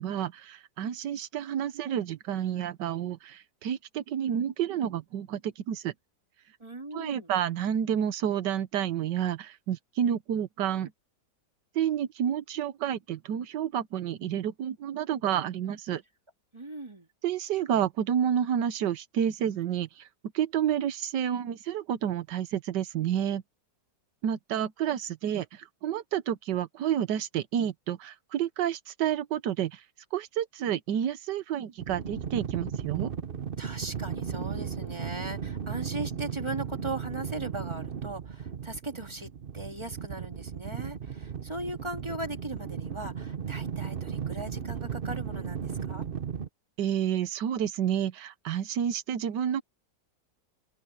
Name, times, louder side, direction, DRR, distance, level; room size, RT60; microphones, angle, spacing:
voice 1, 0.0-5.9 6.9-10.9 11.7-16.0 17.2-20.1 20.3-23.4 24.2-29.8 30.1-33.1 46.8-49.6, right 9 dB, 75° right, 1.5 m, -30 dB
voice 2, 6.6-7.3 16.5-17.1 33.6-39.3 39.5-46.0, right 2 dB, 15° right, 2.6 m, -38 dB
sound 1, 31.8-46.5, right 7 dB, 40° right, 0.9 m, -36 dB
open air
omnidirectional pair, 1.9 m